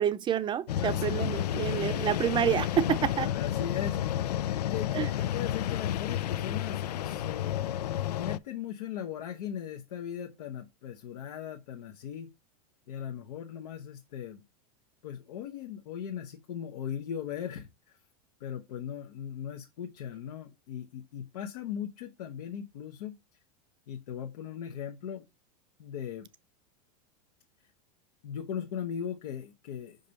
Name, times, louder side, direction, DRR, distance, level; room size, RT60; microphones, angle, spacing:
voice 1, 0.0-3.3 4.9-5.1, right 9 dB, 25° right, 0.6 m, -28 dB
sound 1, 0.7-8.4, left 11 dB, 90° left, 0.4 m, -31 dB
voice 2, 0.8-1.1 3.2-4.0 4.5-7.7 8.1-12.3 12.9-14.4 15.0-18.0 18.4-23.1 23.9-25.2 25.8-26.3 28.2-30.0, left 9 dB, 75° left, 1.1 m, -38 dB
5.3 x 5.3 x 4.0 m
hypercardioid pair, 115°, 20 cm